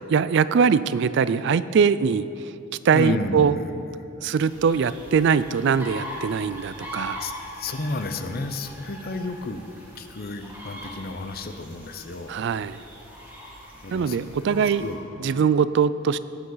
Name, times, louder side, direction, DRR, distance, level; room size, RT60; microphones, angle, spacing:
voice 1, 0.1-2.5 2.8-3.6 4.2-7.2 12.3-12.8 13.9-14.8 15.2-16.2, right 6 dB, 60° right, 15 dB, 0.3 m, -22 dB
voice 2, 2.9-3.8 7.1-9.6 10.0-12.5 13.8-14.2 14.5-15.0, left 2 dB, 50° left, 8 dB, 0.7 m, -32 dB
sound 1, 4.4-15.0, equal, 10° right, 2.7 m, -41 dB
16.5 x 10.5 x 3.9 m, 2.8 s
head